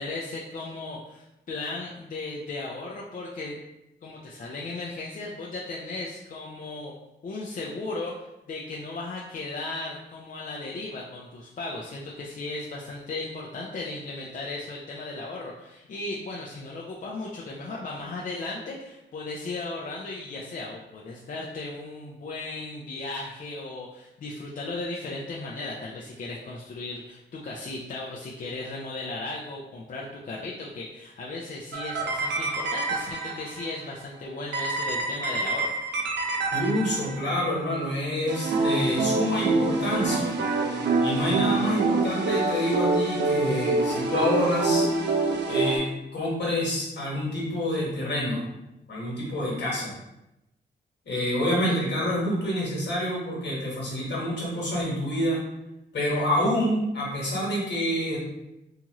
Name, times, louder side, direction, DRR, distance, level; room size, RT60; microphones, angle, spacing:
voice 1, 0.0-3.6 4.0-6.9 7.2-35.7 51.6-51.7, left 2 dB, 45° left, -3 dB, 0.5 m, -36 dB
sound 1, 31.7-33.7 34.5-37.4 38.3-45.8, right 3 dB, 65° right, 0.5 m, -26 dB
voice 2, 36.5-40.3 41.0-44.9 45.5-45.9 46.1-48.4 48.9-49.9 51.0-55.4 55.9-58.2, equal, 65° left, -5 dB, 1.3 m, -27 dB
2.7 x 2.4 x 2.9 m, 0.91 s
cardioid pair, 75°, 20 cm